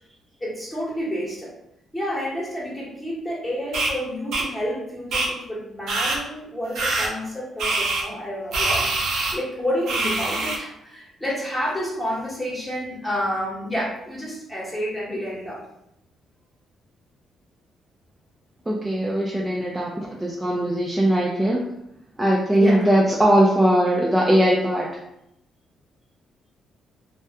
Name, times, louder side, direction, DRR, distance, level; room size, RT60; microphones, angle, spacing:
voice 1, 0.4-1.5 1.9-15.6 22.6-22.9, equal, 15° left, -6 dB, 1.0 m, -29 dB
sound 1, 3.7-3.9 4.3-4.4 5.1-5.3 5.9-6.2 6.8-7.1 7.6-8.0 8.5-9.3 9.9-10.6, right 2 dB, 75° right, 0.6 m, -24 dB
voice 2, 18.7-21.6 22.2-25.0, right 1 dB, 10° right, -3 dB, 0.4 m, -20 dB
2.3 x 2.1 x 2.8 m, 0.82 s
cardioid pair, 90°, 0 cm